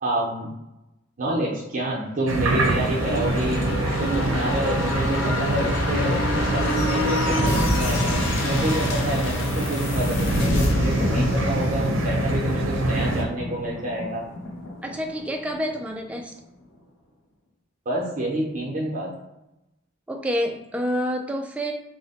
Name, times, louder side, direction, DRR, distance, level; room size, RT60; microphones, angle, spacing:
voice 1, 0.0-0.5 1.2-8.2 8.4-14.2 17.9-19.1, right 1 dB, 40° right, -4 dB, 0.6 m, -28 dB
sound 1, 2.3-13.2, right 1 dB, 85° right, 0.5 m, -25 dB
sound 2, 2.4-15.9 16.2-16.3, left 1 dB, 70° left, 0.6 m, -28 dB
voice 2, 14.8-16.3 20.1-21.7, equal, 5° right, 2 dB, 0.3 m, -28 dB
2.9 x 2.1 x 4.0 m, 0.90 s
head